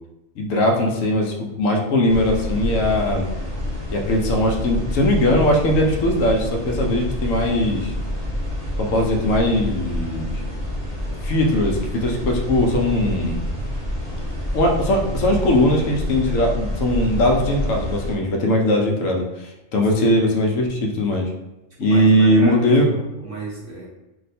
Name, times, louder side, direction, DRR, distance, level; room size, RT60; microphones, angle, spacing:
voice 1, 0.4-3.3 3.9-7.9 8.8-10.4 11.2-13.4 14.5-21.3 21.8-22.9, left 1 dB, 85° left, 1 dB, 1.0 m, -20 dB
sound 1, 2.1-18.1, left 1 dB, 10° left, 0.9 m, -27 dB
voice 2, 21.8-23.9, right 3 dB, 55° right, -5 dB, 0.7 m, -32 dB
2.6 x 2.2 x 4.1 m, 0.97 s
omnidirectional pair, 1.3 m